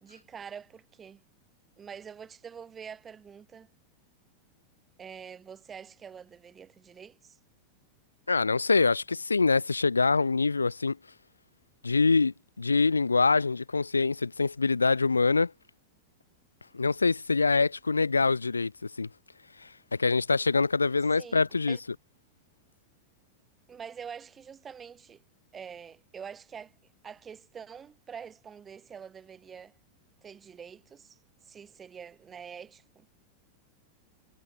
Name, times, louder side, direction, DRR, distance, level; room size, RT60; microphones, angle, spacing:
voice 1, 0.0-1.2 1.8-3.7 5.0-7.4 21.2-21.8 23.7-25.2 25.5-26.7 27.0-29.8 30.2-33.1, right 7 dB, 20° right, 2.5 m, -45 dB
voice 2, 8.3-11.0 11.8-15.5 16.7-18.7 19.0-19.1 20.0-21.8, left 4 dB, 80° left, 0.6 m, -24 dB
figure-of-eight pair, 90°, 0 cm